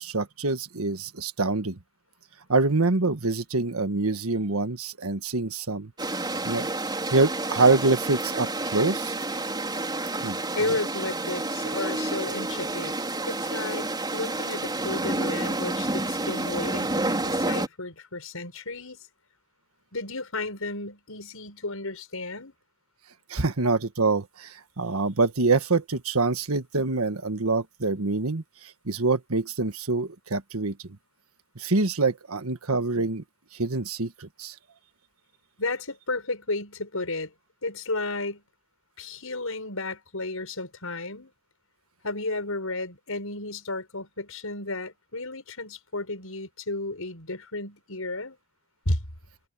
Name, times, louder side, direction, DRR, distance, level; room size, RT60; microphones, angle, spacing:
voice 1, 0.0-1.8 2.5-5.9 6.2-6.7 7.1-9.2 10.2-10.4 23.3-28.4 28.8-30.8 31.5-33.2 33.6-34.5, right 3 dB, 90° right, 1.5 m, -25 dB
sound 1, 6.0-17.7, right 2 dB, 20° right, 4.3 m, -29 dB
voice 2, 10.5-12.9 13.2-19.0 19.9-22.5 35.6-37.3 37.6-38.4 39.0-41.3 42.0-48.4 48.8-49.0, left 2 dB, 75° left, 6.7 m, -33 dB
head